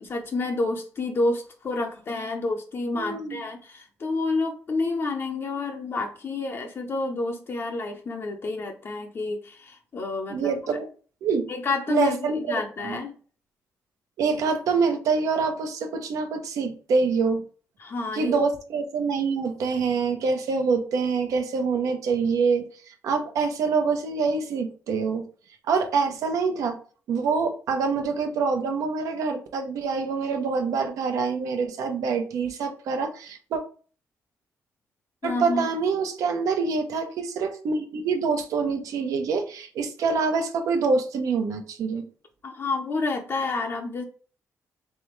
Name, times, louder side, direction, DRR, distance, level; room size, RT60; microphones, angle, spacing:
voice 1, 0.0-10.5 11.5-13.1 17.8-18.4 35.2-35.7 42.4-44.0, left 3 dB, 45° left, 2 dB, 0.6 m, -29 dB
voice 2, 2.9-3.4 10.3-10.9 11.2-11.5 11.9-13.0 14.2-17.4 18.1-25.3 25.7-26.8 27.1-33.6 35.2-42.1, right 4 dB, 75° right, 5 dB, 0.8 m, -26 dB
3.4 x 3.3 x 3.1 m, 0.40 s
cardioid pair, 80°, 6 cm